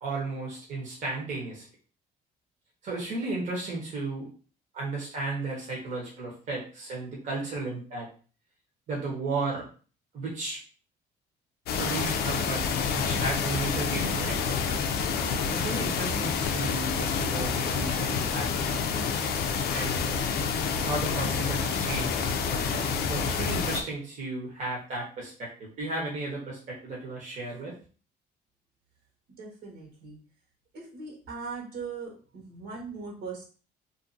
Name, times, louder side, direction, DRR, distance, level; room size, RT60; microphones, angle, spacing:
voice 1, 0.0-1.6 2.8-4.3 4.7-8.1 8.9-9.7 10.1-10.6 11.7-12.6 12.9-14.6 15.5-18.5 19.7-20.2 20.8-27.7, right 3 dB, 45° right, -3 dB, 1.0 m, -34 dB
sound 1, 11.7-23.8, left 6 dB, 70° left, 0.4 m, -28 dB
voice 2, 29.4-30.2 30.7-33.4, right 4 dB, 75° right, -2 dB, 1.2 m, -40 dB
2.6 x 2.4 x 2.5 m, 0.38 s
cardioid pair, 110°, 17 cm